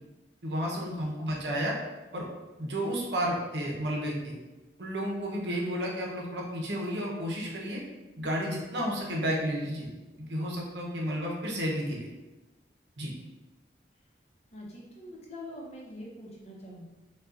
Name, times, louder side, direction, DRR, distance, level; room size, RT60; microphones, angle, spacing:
voice 1, 0.4-1.8 2.1-2.3 2.6-4.3 4.8-7.8 8.2-9.9 10.2-12.1 13.0-13.1, equal, 75° right, -2 dB, 0.9 m, -32 dB
voice 2, 14.5-16.9, left 1 dB, 35° left, -2 dB, 0.8 m, -44 dB
5.4 x 2.4 x 2.6 m, 1.1 s
head